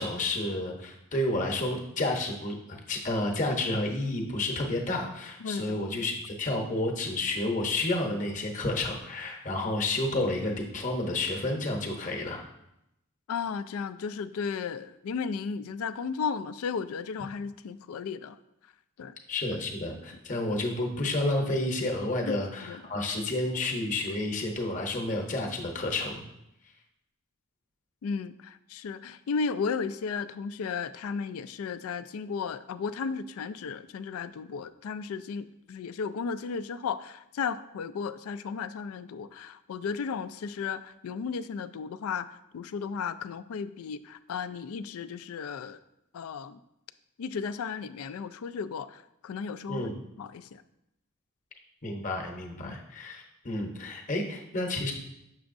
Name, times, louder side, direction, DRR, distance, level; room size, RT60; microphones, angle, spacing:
voice 1, 0.0-12.4 19.3-26.2 49.7-50.0 51.8-54.9, left 2 dB, 35° left, 2 dB, 0.8 m, -30 dB
voice 2, 5.4-5.8 13.3-18.4 19.0-19.2 22.3-22.8 28.0-45.8 46.1-46.6 47.2-49.9 50.2-50.6 52.6-52.8, left 5 dB, 75° left, 14 dB, 0.3 m, -34 dB
7.0 x 6.2 x 2.6 m, 0.85 s
head